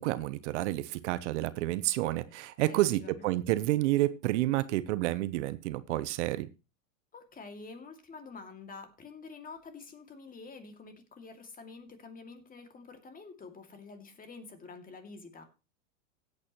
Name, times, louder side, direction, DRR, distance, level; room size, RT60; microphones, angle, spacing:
voice 1, 0.0-6.5, right 16 dB, 60° right, 15 dB, 0.9 m, -29 dB
voice 2, 2.7-3.3 7.1-15.4, left 4 dB, 20° left, 7 dB, 2.4 m, -48 dB
16.5 x 8.6 x 3.1 m, 0.29 s
hypercardioid pair, 105°, 39 cm